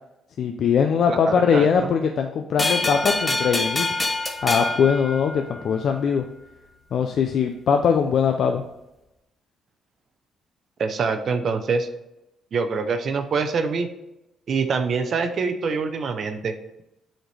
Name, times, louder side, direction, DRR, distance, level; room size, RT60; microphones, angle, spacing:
voice 1, 0.4-3.9 4.4-6.2 6.9-8.6, left 6 dB, 65° left, 4 dB, 0.5 m, -21 dB
voice 2, 1.1-1.9 10.8-11.9 12.5-13.9 14.5-16.5, right 5 dB, 55° right, 7 dB, 0.6 m, -25 dB
sound 1, 2.6-5.8, left 2 dB, 20° left, 0.9 m, -26 dB
7.8 x 4.3 x 3.3 m, 0.90 s
cardioid pair, 90°, 0 cm